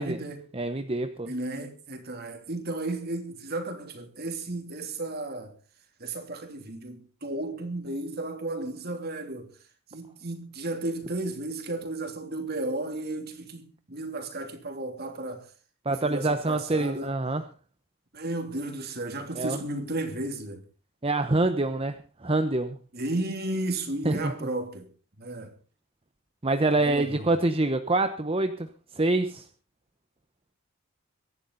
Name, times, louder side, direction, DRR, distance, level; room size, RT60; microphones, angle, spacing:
voice 1, 0.0-0.4 1.2-5.5 6.0-9.5 9.9-15.5 15.9-17.1 18.1-20.6 22.9-24.9 25.2-25.5 26.8-27.3, right 2 dB, 45° right, 3.0 m, -34 dB
voice 2, 0.5-1.3 15.8-17.4 19.4-19.6 21.0-22.8 24.0-24.3 26.4-28.7 28.9-29.5, right 2 dB, 25° right, 0.9 m, -26 dB
23.5 x 11.0 x 4.0 m
head